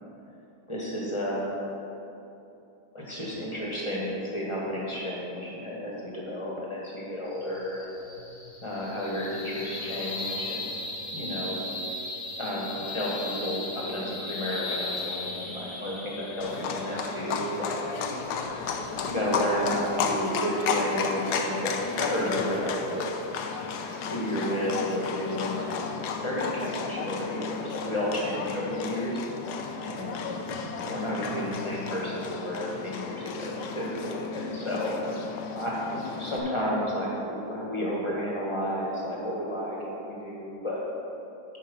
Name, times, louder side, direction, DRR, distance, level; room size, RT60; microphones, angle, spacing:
voice 1, 0.7-1.6 2.9-7.9 8.6-10.7 11.1-11.6 12.4-17.8 19.0-23.1 23.8-25.7 26.2-29.2 29.8-30.4 30.8-34.9 35.5-40.8, equal, 15° left, -5 dB, 1.4 m, -32 dB
sound 1, 7.3-19.9, left 2 dB, 90° left, 2.4 m, -37 dB
Livestock farm animals working animals, 16.4-36.4, left 5 dB, 70° left, 1.1 m, -33 dB
8.9 x 5.7 x 5.4 m, 2.8 s
omnidirectional pair, 2.1 m